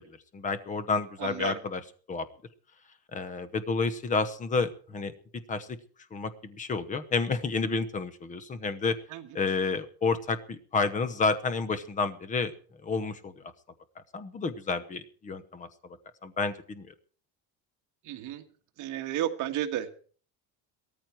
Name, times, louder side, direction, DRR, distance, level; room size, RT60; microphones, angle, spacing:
voice 1, 0.3-1.8 2.1-2.3 3.1-5.1 5.5-5.8 6.1-9.0 9.3-12.5 12.8-13.4 14.1-15.7 16.2-16.9, left 4 dB, 20° left, 14 dB, 0.9 m, -30 dB
voice 2, 1.2-1.6 9.1-9.3 18.0-18.4 18.8-19.9, right 11 dB, 50° right, 4 dB, 1.9 m, -32 dB
17.5 x 14.0 x 4.6 m, 0.43 s
cardioid pair, 170°, 39 cm